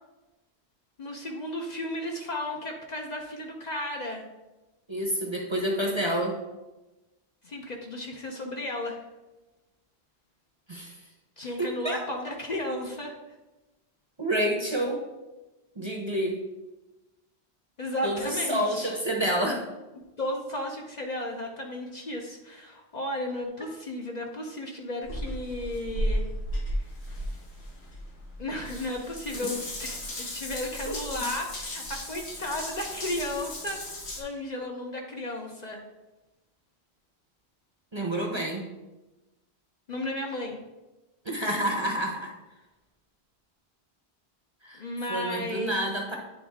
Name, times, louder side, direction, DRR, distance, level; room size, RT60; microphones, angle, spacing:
voice 1, 1.0-4.3 7.4-9.0 11.4-13.1 17.8-18.9 19.9-26.3 26.7-26.8 28.4-29.5 29.8-33.8 34.2-35.8 39.9-40.6 44.8-45.9, left 1 dB, 45° left, 1 dB, 0.8 m, -34 dB
voice 2, 4.9-6.3 10.7-11.0 11.4-12.0 14.2-15.0 15.8-16.4 18.0-19.6 29.4-29.5 30.9-31.3 37.9-38.6 41.2-42.3 44.6-44.8 45.1-46.2, right 1 dB, 30° right, 0 dB, 0.8 m, -29 dB
Water tap faucet / Bathtub (filling or washing) / Drip, 25.0-34.2, equal, 80° left, 1.5 m, -35 dB
9.4 x 3.5 x 3.5 m, 1.1 s
omnidirectional pair, 1.1 m